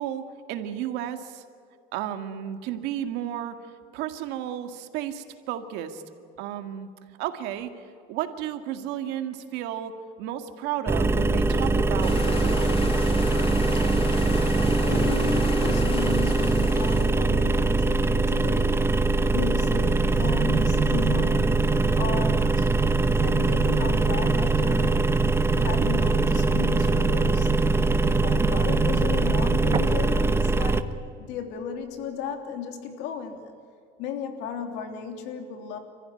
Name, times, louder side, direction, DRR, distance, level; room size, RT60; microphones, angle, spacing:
voice 1, 0.0-1.4 1.9-3.6 3.9-6.0 6.4-6.9 7.2-7.7 8.1-9.9 10.2-12.8, right 11 dB, 80° right, 8 dB, 2.0 m, -33 dB
sound 1, 10.9-30.8, right 3 dB, 15° right, 1.0 m, -23 dB
sound 2, 12.0-17.1, left 4 dB, 30° left, 2.8 m, -36 dB
voice 2, 14.8-18.8 19.3-25.2 25.5-27.5 28.1-33.5 34.0-35.8, left 6 dB, 80° left, 5 dB, 3.2 m, -35 dB
sound 3, 19.8-29.8, right 5 dB, 30° right, 1.8 m, -29 dB
28.0 x 15.0 x 9.8 m, 2.4 s
cardioid pair, 120°, 18 cm